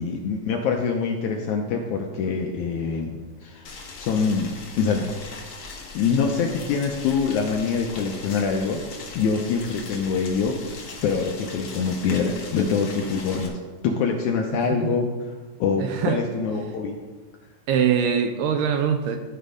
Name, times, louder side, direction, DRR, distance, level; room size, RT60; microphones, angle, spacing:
voice 1, 0.0-3.7 4.0-5.1 5.9-8.8 9.1-13.6 13.8-15.2 15.6-17.0, left 5 dB, 75° left, 2 dB, 1.8 m, -25 dB
Boiling, 3.6-13.5, left 3 dB, 60° left, 1.3 m, -39 dB
voice 2, 15.8-16.2 17.7-19.2, right 7 dB, 80° right, 6 dB, 2.0 m, -23 dB
13.5 x 4.6 x 5.1 m, 1.3 s
omnidirectional pair, 4.1 m